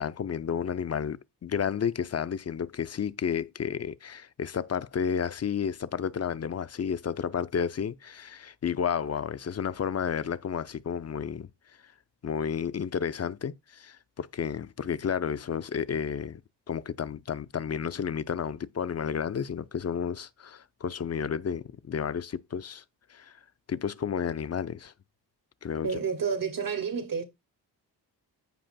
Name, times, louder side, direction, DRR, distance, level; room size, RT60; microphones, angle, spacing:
voice 1, 0.0-11.5 11.8-11.9 12.2-16.4 16.7-22.8 23.1-23.4 23.7-24.9 25.6-25.9, left 7 dB, 35° left, 0.5 m, -31 dB
voice 2, 25.8-27.2, right 6 dB, 50° right, 2.2 m, -30 dB
14.5 x 5.0 x 2.3 m
cardioid pair, 60°, 43 cm